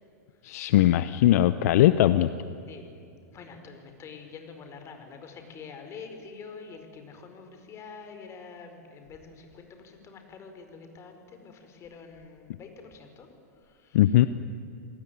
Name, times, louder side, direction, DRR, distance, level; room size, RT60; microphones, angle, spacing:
voice 1, 0.4-2.3 13.9-14.3, left 13 dB, 60° left, 13 dB, 0.8 m, -20 dB
voice 2, 3.3-13.3 13.5-14.1, left 5 dB, 30° left, 6 dB, 4.8 m, -46 dB
27.5 x 18.5 x 9.3 m, 2.6 s
hypercardioid pair, 110°, 9 cm